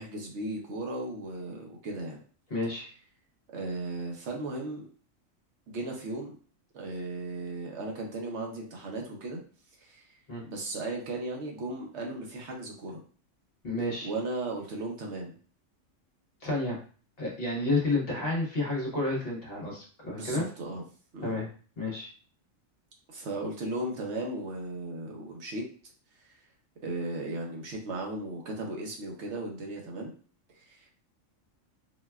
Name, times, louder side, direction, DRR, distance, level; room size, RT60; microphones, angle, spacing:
voice 1, 0.0-2.2 3.5-4.8 5.7-6.3 6.7-9.4 9.8-10.0 10.4-13.0 14.0-15.3 20.1-20.8 21.1-21.4 23.1-25.6 26.8-30.1 30.7-30.9, right 2 dB, 65° right, 0 dB, 0.9 m, -36 dB
voice 2, 2.5-2.9 10.3-10.4 13.6-14.1 16.4-16.8 17.2-20.5 21.2-21.5 21.8-22.1, left 2 dB, 50° left, -3 dB, 1.0 m, -30 dB
3.9 x 2.2 x 2.2 m, 0.41 s
omnidirectional pair, 1.4 m